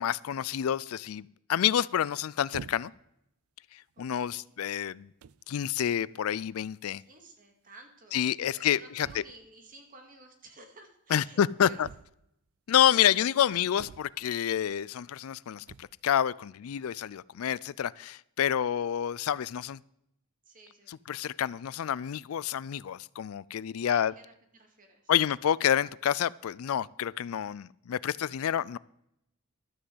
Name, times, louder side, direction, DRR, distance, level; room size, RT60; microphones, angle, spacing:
voice 1, 0.0-2.9 3.7-5.1 5.5-7.0 8.1-9.2 11.1-11.9 12.7-19.8 20.9-24.1 25.1-28.8, left 9 dB, 80° left, 21 dB, 0.4 m, -28 dB
sound 1, 2.5-3.1 3.9-4.1 4.9-5.0 5.2-5.5 6.7-6.8 7.0-7.1 7.4-7.5 9.0-9.5 11.8-12.5 13.8-14.4 15.6-16.1, right 6 dB, 85° right, 0.4 m, -47 dB
voice 2, 3.9-4.5 7.1-11.8 20.5-21.0 23.8-24.3 24.6-25.1, right 2 dB, 40° right, 4 dB, 2.2 m, -53 dB
12.5 x 6.4 x 7.9 m, 0.76 s
head